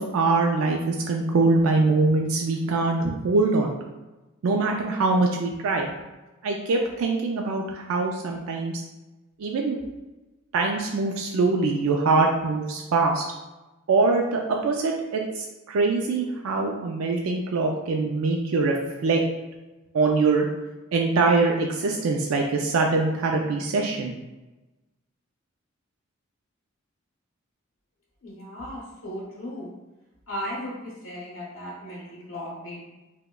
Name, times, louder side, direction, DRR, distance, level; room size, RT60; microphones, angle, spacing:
voice 1, 0.0-3.7 4.4-5.9 6.4-8.7 9.4-9.8 10.5-13.2 13.9-18.8 19.0-19.2 19.9-20.5 20.9-24.1, right 3 dB, 80° right, 1 dB, 0.3 m, -23 dB
voice 2, 28.2-29.7 30.3-32.8, equal, 80° left, -6 dB, 0.8 m, -36 dB
4.6 x 2.2 x 2.2 m, 1.1 s
head